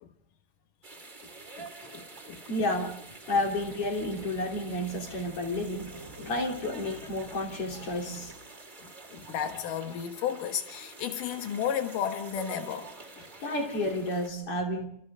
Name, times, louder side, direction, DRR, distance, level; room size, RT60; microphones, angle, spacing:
sound 1, 0.8-14.3, right 3 dB, 25° right, 1.1 m, -48 dB
voice 1, 1.6-2.4 3.3-3.4 6.2-6.3 8.8-12.9 13.2-13.3, left 8 dB, 80° left, 1.9 m, -34 dB
voice 2, 2.5-3.0 3.3-8.3 13.4-14.9, left 1 dB, 35° left, 3.7 m, -31 dB
sound 2, 3.3-8.3, right 2 dB, 50° right, 1.0 m, -48 dB
29.0 x 25.5 x 3.7 m
omnidirectional pair, 5.5 m